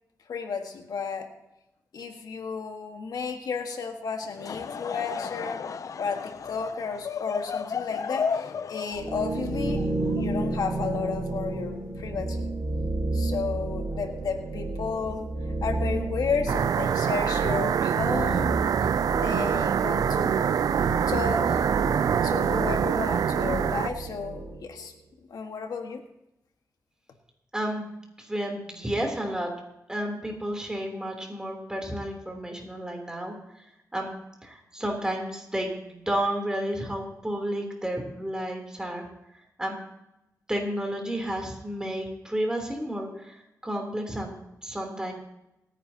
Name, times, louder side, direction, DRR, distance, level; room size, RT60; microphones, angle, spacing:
voice 1, 0.3-1.3 1.9-5.6 6.0-12.5 13.1-15.3 15.6-20.6 21.1-21.7 22.2-24.9 25.3-26.0, left 5 dB, 90° left, 4 dB, 1.6 m, -33 dB
Laughter / Crowd, 4.2-10.7, left 6 dB, 60° left, 0.5 m, -34 dB
sound 1, 8.9-24.7, right 2 dB, 45° right, 6.5 m, -32 dB
sound 2, 16.5-23.9, right 8 dB, 70° right, 0.3 m, -25 dB
voice 2, 27.5-27.9 28.2-29.5 29.9-33.3 33.9-39.1 39.6-39.8 40.5-44.3 44.6-45.1, right 1 dB, 10° right, 1 dB, 3.3 m, -31 dB
27.0 x 10.0 x 2.9 m, 0.90 s
wide cardioid pair, 115°, 6 cm